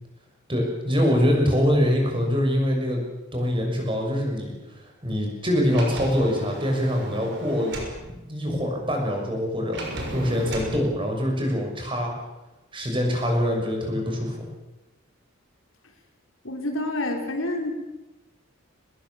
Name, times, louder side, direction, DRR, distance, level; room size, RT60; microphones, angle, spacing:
voice 1, 0.5-3.0 3.3-9.8 10.1-12.1 12.7-14.5, equal, 25° right, 1 dB, 6.5 m, -24 dB
Sliding door, 5.7-8.0 9.7-10.8, right 1 dB, 55° right, 6.1 m, -35 dB
voice 2, 16.4-17.7, left 1 dB, 75° left, 3 dB, 4.0 m, -28 dB
24.0 x 20.5 x 7.2 m, 1.0 s
head